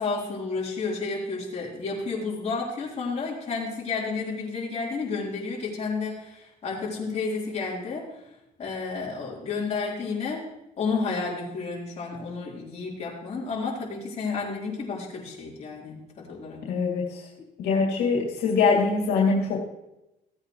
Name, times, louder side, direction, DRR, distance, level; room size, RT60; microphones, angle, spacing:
voice 1, 0.0-8.1 8.6-10.5 10.8-16.6, left 4 dB, 40° left, -5 dB, 4.1 m, -31 dB
voice 2, 16.7-17.2 17.6-19.6, left 4 dB, 85° left, -2 dB, 2.8 m, -23 dB
17.0 x 8.6 x 3.2 m, 0.91 s
cardioid pair, 110°, 17 cm